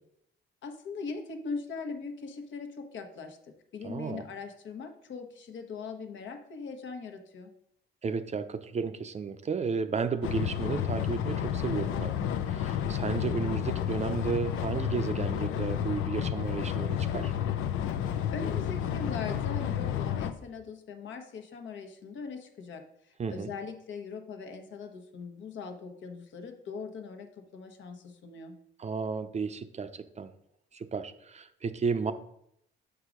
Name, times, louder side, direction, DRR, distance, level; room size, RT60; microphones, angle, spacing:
voice 1, 0.6-7.5 18.3-28.6, left 4 dB, 70° left, 5 dB, 1.1 m, -41 dB
voice 2, 3.8-4.2 8.0-17.3 23.2-23.5 28.8-30.3 30.7-32.1, right 5 dB, 35° right, 11 dB, 0.5 m, -33 dB
sound 1, 10.2-20.3, left 9 dB, 90° left, 0.6 m, -31 dB
6.2 x 4.6 x 5.0 m, 0.75 s
cardioid pair, 90°, 20 cm